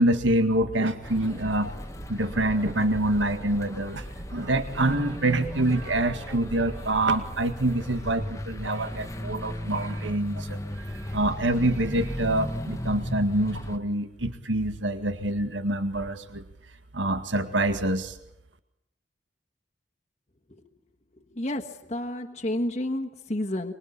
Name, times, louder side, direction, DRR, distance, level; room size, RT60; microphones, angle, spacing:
voice 1, 0.0-1.7 2.1-4.0 4.3-16.4 16.9-18.2, right 1 dB, 80° right, 9 dB, 2.0 m, -26 dB
sound 1, 1.0-13.8, left 1 dB, 15° left, 1.1 m, -36 dB
voice 2, 21.4-23.7, left 1 dB, 35° left, 1 dB, 1.5 m, -30 dB
24.5 x 23.5 x 8.5 m, 0.81 s
head